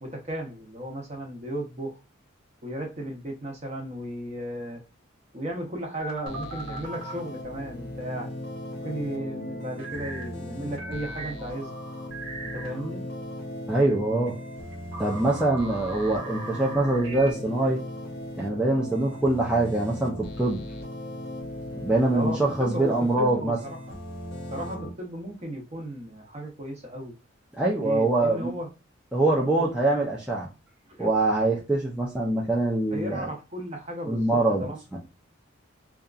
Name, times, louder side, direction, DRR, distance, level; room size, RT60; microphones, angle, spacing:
voice 1, 0.0-2.0 2.6-4.8 5.3-8.3 8.8-11.7 12.4-13.0 22.1-23.9 24.5-27.1 27.8-28.7 29.6-29.7 30.9-31.1 32.9-35.0, right 1 dB, 35° right, 2 dB, 0.7 m, -35 dB
sound 1, 6.0-7.2 9.8-10.3 10.8-12.9 13.8-17.3, right 2 dB, 75° right, 1.1 m, -40 dB
sound 2, 6.3-24.9, left 1 dB, 50° left, 0.6 m, -38 dB
voice 2, 13.7-14.4 15.0-17.8 18.4-20.6 21.8-23.6 27.6-28.5 29.1-30.5 31.0-33.3 34.1-35.0, right 2 dB, 5° right, -4 dB, 0.3 m, -24 dB
2.7 x 2.3 x 2.4 m, 0.29 s
head